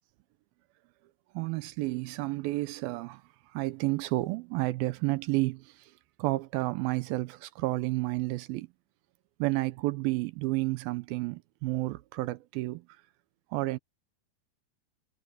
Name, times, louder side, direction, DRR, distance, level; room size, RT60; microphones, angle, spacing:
voice 1, 1.3-3.2 3.5-5.9 6.2-8.7 9.4-12.8 13.5-13.8, right 20 dB, 80° right, 2.4 m, -31 dB
omnidirectional pair, 4.3 m